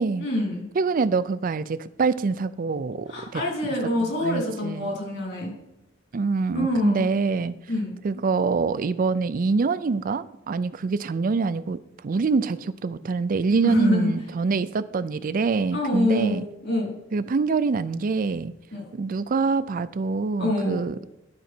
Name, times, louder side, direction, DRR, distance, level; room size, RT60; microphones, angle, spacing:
voice 1, 0.2-0.6 3.1-5.5 6.5-7.0 7.7-7.9 13.6-14.1 15.7-16.9 18.7-18.8 20.4-20.8, left 1 dB, 60° left, 3.3 m, -25 dB
voice 2, 0.8-3.4 4.0-4.9 6.1-7.5 8.0-11.8 12.0-16.4 17.1-18.5 18.9-21.0, right 4 dB, 45° right, 0.4 m, -25 dB
12.0 x 5.1 x 4.4 m
head